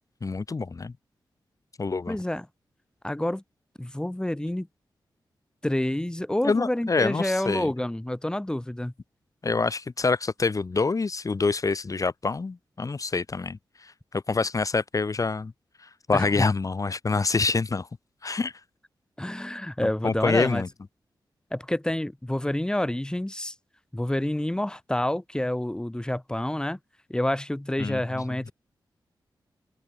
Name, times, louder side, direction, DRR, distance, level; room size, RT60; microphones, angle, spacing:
voice 1, 0.2-0.9 1.8-2.2 6.4-7.7 9.4-15.5 15.8-17.9 18.2-18.5 20.0-20.7 27.8-28.0, left 4 dB, 45° left, 2.5 m, -26 dB
voice 2, 2.1-2.5 3.0-3.4 3.8-4.7 5.6-8.9 16.1-16.5 19.2-20.6 21.5-23.5 23.9-26.8 27.1-28.5, left 1 dB, 10° left, 3.0 m, -28 dB
cardioid pair, 75°, 8 cm